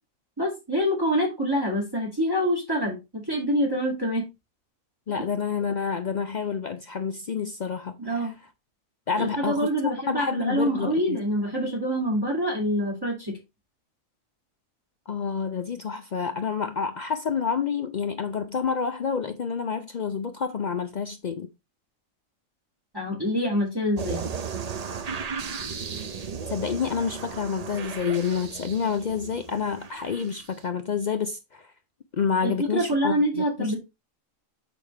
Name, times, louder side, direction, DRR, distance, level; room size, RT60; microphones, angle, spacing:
voice 1, 0.4-4.3 8.0-8.3 9.2-13.4 22.9-24.3 32.4-33.8, equal, 15° right, 2.0 m, -26 dB
voice 2, 5.1-8.3 9.1-9.7 10.1-11.2 15.1-21.5 26.5-31.7 32.2-33.8, left 6 dB, 75° left, 0.4 m, -28 dB
sound 1, 24.0-30.5, right 6 dB, 45° right, 0.5 m, -35 dB
6.4 x 5.3 x 3.2 m
omnidirectional pair, 1.4 m